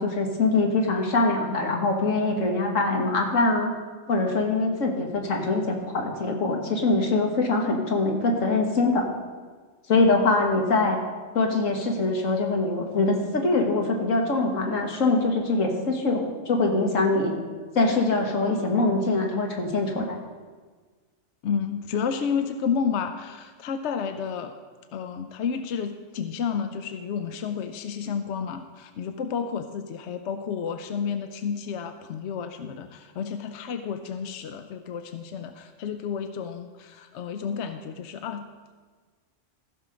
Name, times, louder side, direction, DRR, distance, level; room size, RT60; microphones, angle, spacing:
voice 1, 0.0-3.7 4.1-9.1 9.9-11.0 11.4-17.3 17.8-20.2, left 3 dB, 85° left, 2 dB, 1.8 m, -23 dB
voice 2, 21.4-24.5 24.9-38.4, left 6 dB, 70° left, 8 dB, 0.9 m, -31 dB
15.0 x 6.2 x 5.2 m, 1.5 s
omnidirectional pair, 1.3 m